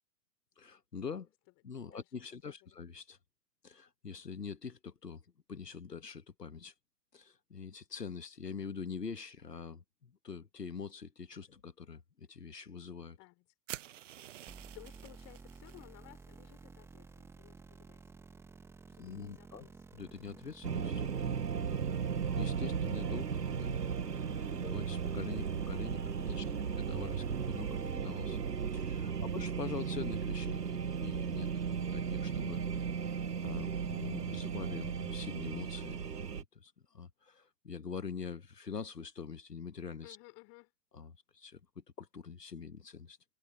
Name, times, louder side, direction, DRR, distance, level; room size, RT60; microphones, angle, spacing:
voice 1, 0.6-1.3 1.6-3.2 3.6-5.2 5.5-6.7 7.1-13.2 19.0-19.7 19.9-21.4 21.8-23.8 24.6-28.4 28.7-36.1 36.4-40.2 40.9-43.2, left 5 dB, 85° left, 1.5 m, -45 dB
voice 2, 2.4-2.8 13.2-13.5 14.7-18.0 18.9-19.8 23.7-24.6 26.2-26.6 29.0-29.4 40.0-40.7, left 25 dB, 30° left, 4.9 m, -58 dB
sound 1, 13.7-15.9, right 12 dB, 50° right, 0.9 m, -48 dB
sound 2, 14.5-28.0, right 4 dB, 5° right, 1.1 m, -54 dB
sound 3, 20.6-36.4, right 6 dB, 85° right, 0.9 m, -36 dB
figure-of-eight pair, 115°, 47 cm